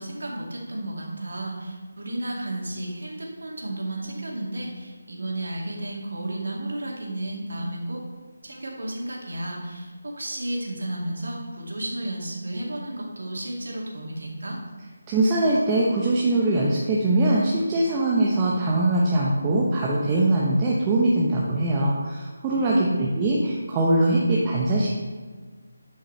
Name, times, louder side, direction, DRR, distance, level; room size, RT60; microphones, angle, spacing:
voice 1, 0.0-8.0 8.4-14.6 22.6-23.1, right 1 dB, 75° right, -2 dB, 2.2 m, -32 dB
voice 2, 15.1-25.0, right 2 dB, 20° right, -4 dB, 0.8 m, -22 dB
11.0 x 5.6 x 3.2 m, 1.5 s
figure-of-eight pair, 165°, 0 cm